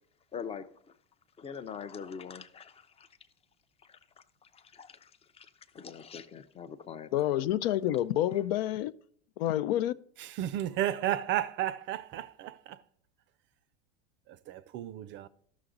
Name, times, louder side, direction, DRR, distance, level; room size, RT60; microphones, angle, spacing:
voice 1, 0.3-0.7 1.4-2.7 3.0-3.1 4.7-4.9 5.4-5.5 5.7-7.1, left 6 dB, 20° left, 0.5 m, -42 dB
voice 2, 7.1-8.9 9.4-9.9, left 13 dB, 70° left, 0.4 m, -28 dB
voice 3, 10.2-12.8 14.3-15.3, right 12 dB, 40° right, 0.4 m, -33 dB
12.5 x 6.0 x 3.8 m
supercardioid pair, 115°, 31 cm